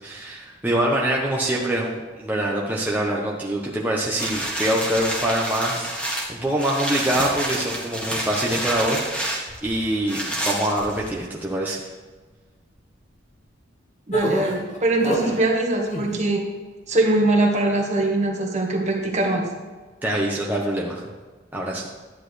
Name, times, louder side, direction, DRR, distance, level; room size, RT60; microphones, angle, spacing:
voice 1, 0.0-11.8 20.0-21.0 21.5-21.8, right 1 dB, 10° right, -4 dB, 1.0 m, -25 dB
sound 1, 4.2-11.3 11.9-12.0, right 1 dB, 5° left, 1.5 m, -29 dB
sound 2, 14.1-15.4 15.8-16.3, equal, 40° left, 1.5 m, -26 dB
voice 2, 14.1-16.4 16.9-19.5, right 2 dB, 40° right, 1 dB, 1.5 m, -22 dB
11.5 x 10.0 x 3.3 m, 1.3 s
head